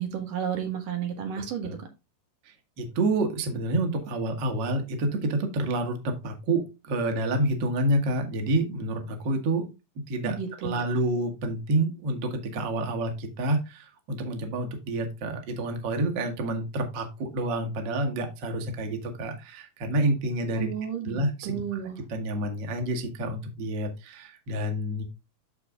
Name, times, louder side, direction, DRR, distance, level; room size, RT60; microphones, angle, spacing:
voice 1, 0.0-1.7 10.2-10.8 20.5-22.0, right 8 dB, 85° right, 4 dB, 3.3 m, -32 dB
voice 2, 2.5-9.7 10.1-20.7 21.0-21.6 22.1-25.0, right 1 dB, 45° right, 4 dB, 1.9 m, -28 dB
13.5 x 4.5 x 2.4 m, 0.26 s
omnidirectional pair, 3.6 m